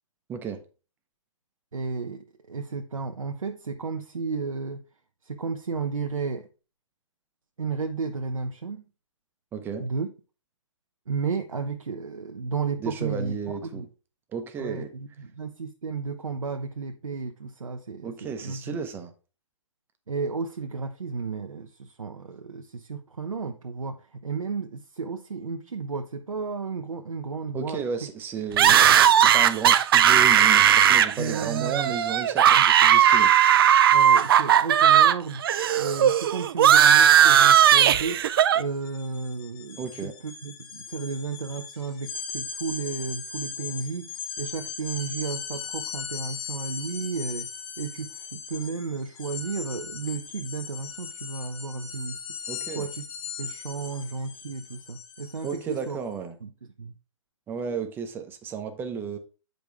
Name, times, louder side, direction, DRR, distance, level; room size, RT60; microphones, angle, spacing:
voice 1, 0.3-0.6 9.5-9.9 12.8-13.9 14.3-14.9 18.0-19.1 27.5-33.3 39.8-40.1 52.5-52.9 55.4-56.3 57.5-59.2, right 6 dB, 10° right, 0.7 m, -33 dB
voice 2, 1.7-4.8 5.2-6.5 7.6-8.9 9.8-10.1 11.1-13.4 13.7-13.9 14.6-18.8 20.1-28.1 28.6-28.8 31.2-31.9 32.6-32.7 33.9-35.4 35.8-38.2 38.5-47.5 47.8-52.2 52.7-53.0 53.4-56.0 56.4-56.5 56.8-57.0, right 5 dB, 80° right, 0.8 m, -33 dB
sound 1, 28.6-35.2 35.4-38.6, right 9 dB, 45° right, 0.4 m, -17 dB
sound 2, 38.2-38.4 38.7-55.9, left 6 dB, 45° left, 1.9 m, -38 dB
7.9 x 5.2 x 3.5 m
figure-of-eight pair, 135°, 17 cm